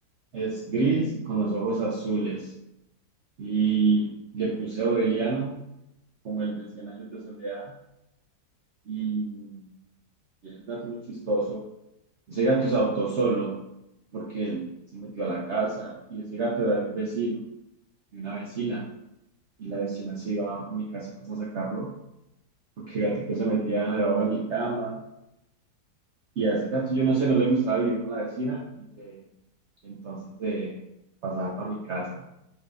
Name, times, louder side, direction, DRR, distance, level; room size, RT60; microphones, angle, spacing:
voice 1, 0.3-2.5 3.4-5.5 6.2-7.7 8.9-9.7 10.4-11.6 12.3-13.5 14.1-14.7 14.9-17.3 18.1-18.8 19.6-21.9 22.8-25.0 26.4-29.2 29.8-30.7 31.2-32.2, right 3 dB, 75° right, -3 dB, 0.6 m, -28 dB
4.2 x 2.5 x 3.3 m, 0.86 s
omnidirectional pair, 1.9 m